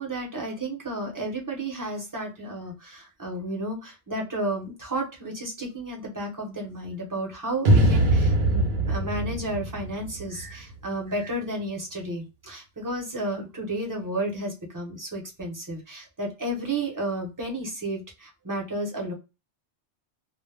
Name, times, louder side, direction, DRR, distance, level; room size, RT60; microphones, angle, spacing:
voice 1, 0.0-19.1, right 1 dB, 20° right, -1 dB, 0.7 m, -32 dB
sound 1, 7.6-10.8, right 1 dB, 55° right, 0.7 m, -22 dB
2.2 x 2.0 x 3.2 m, 0.29 s
omnidirectional pair, 1.2 m